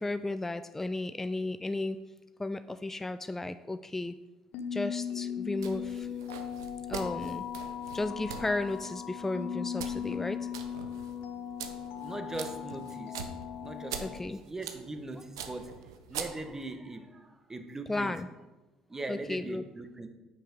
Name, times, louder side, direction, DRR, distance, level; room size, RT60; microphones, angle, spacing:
voice 1, 0.0-2.0 2.4-4.2 4.7-6.1 6.9-7.5 7.9-10.5 14.0-14.4 17.9-18.3 19.1-19.6, left 2 dB, 15° left, 11 dB, 0.3 m, -34 dB
sound 1, 4.5-14.2, left 8 dB, 65° left, 0.7 m, -38 dB
sound 2, 5.6-16.7, right 7 dB, 90° right, 0.5 m, -44 dB
voice 2, 12.0-13.3 13.6-18.2 18.9-20.1, right 2 dB, 20° right, 7 dB, 1.0 m, -41 dB
5.6 x 5.5 x 5.1 m, 1.1 s
hypercardioid pair, 55°, 2 cm